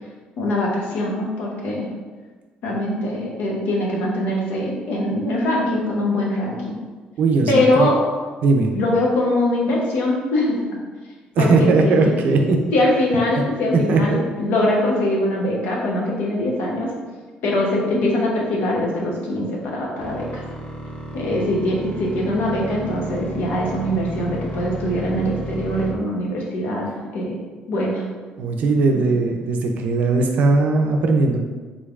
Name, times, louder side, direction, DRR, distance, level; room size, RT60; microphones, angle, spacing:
voice 1, 0.4-1.9 2.6-6.8 7.5-8.0 8.7-10.6 11.4-12.1 12.7-16.9 17.4-20.4 21.1-27.4 27.7-28.0 28.9-29.0, left 1 dB, 75° left, -2 dB, 0.9 m, -22 dB
voice 2, 7.2-7.9 8.4-8.7 11.4-12.6 13.4-13.5 13.7-14.2 28.4-31.4, right 3 dB, 60° right, 3 dB, 0.5 m, -18 dB
sound 1, 20.0-25.9, right 1 dB, 30° left, 0.7 m, -32 dB
3.8 x 3.2 x 2.4 m, 1.4 s
cardioid pair, 120°, 3 cm